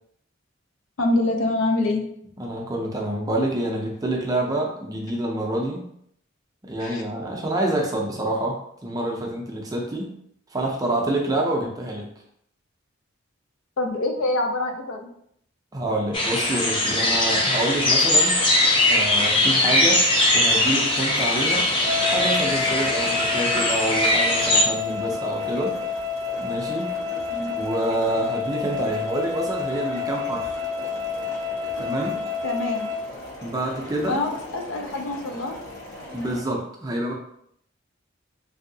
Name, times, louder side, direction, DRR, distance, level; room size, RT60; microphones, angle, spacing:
voice 1, 1.0-2.0 6.8-7.0 13.8-15.1 27.3-27.5 32.4-32.9 34.1-35.6, left 2 dB, 85° left, 3 dB, 0.5 m, -25 dB
voice 2, 2.4-5.8 6.6-10.1 10.5-12.1 15.7-18.4 18.9-20.0 20.3-21.7 22.1-25.8 26.4-26.9 27.6-30.5 31.8-32.2 33.4-34.2 36.1-37.1, right 1 dB, 20° right, -1 dB, 0.5 m, -27 dB
sound 1, 16.1-24.6, left 1 dB, 25° left, 0.5 m, -20 dB
sound 2, 21.1-36.4, left 1 dB, 50° left, 0.9 m, -40 dB
sound 3, 21.8-33.0, left 5 dB, 85° right, 0.4 m, -29 dB
3.0 x 2.7 x 2.7 m, 0.71 s
head